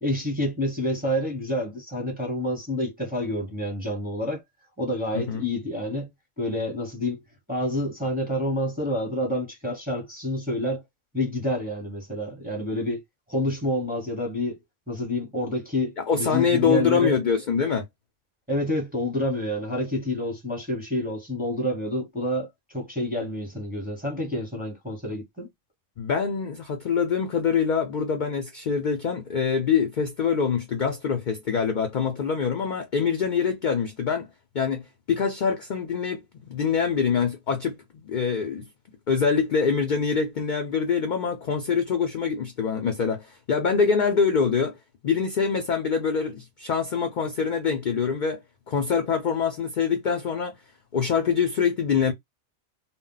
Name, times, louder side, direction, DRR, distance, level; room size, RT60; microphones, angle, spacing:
voice 1, 0.0-4.4 4.8-6.1 6.4-7.2 7.5-10.8 11.1-13.0 13.3-14.6 14.9-17.2 18.5-25.5, left 1 dB, 10° right, 0.8 m, -28 dB
voice 2, 16.0-17.8 26.0-34.3 34.5-34.8 35.1-38.6 39.1-44.8 45.0-48.4 48.7-50.5 50.9-52.1, left 6 dB, 55° left, 0.5 m, -24 dB
2.1 x 2.1 x 3.8 m
omnidirectional pair, 1.2 m